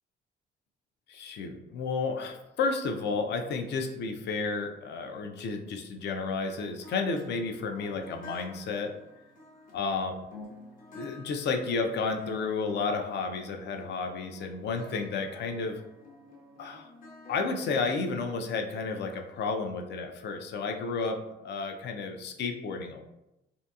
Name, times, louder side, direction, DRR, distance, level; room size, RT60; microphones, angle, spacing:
voice 1, 1.1-8.9 9.7-10.1 10.9-15.8 16.6-16.9 17.3-23.0, left 4 dB, 60° left, 4 dB, 0.4 m, -32 dB
sound 1, 6.5-19.6, left 2 dB, 45° left, 0.8 m, -50 dB
2.7 x 2.5 x 2.3 m, 0.90 s
cardioid pair, 90°, 20 cm